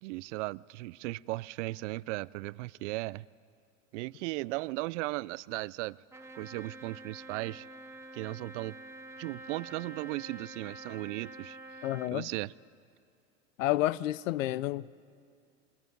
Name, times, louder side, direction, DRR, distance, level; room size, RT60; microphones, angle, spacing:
voice 1, 0.0-3.3 3.9-6.0 6.3-7.7 8.1-8.8 9.2-11.6 12.1-12.5, right 21 dB, 65° right, 0.5 m, -36 dB
Trumpet, 6.1-12.2, right 2 dB, 5° right, 1.5 m, -47 dB
voice 2, 11.8-12.3 13.6-14.9, left 15 dB, 75° left, 0.7 m, -30 dB
28.0 x 22.5 x 5.3 m
hypercardioid pair, 90°, 39 cm